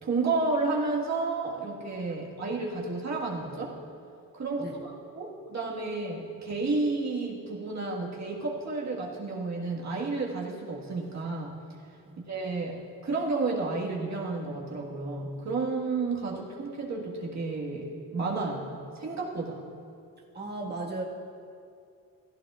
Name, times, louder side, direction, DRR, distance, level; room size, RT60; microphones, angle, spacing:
voice 1, 0.0-3.8 4.3-11.6 12.3-19.6, right 3 dB, 50° right, -3 dB, 1.7 m, -31 dB
voice 2, 20.3-21.0, right 2 dB, 30° right, -3 dB, 1.7 m, -36 dB
15.0 x 14.5 x 2.4 m, 2.4 s
cardioid pair, 80°, 35 cm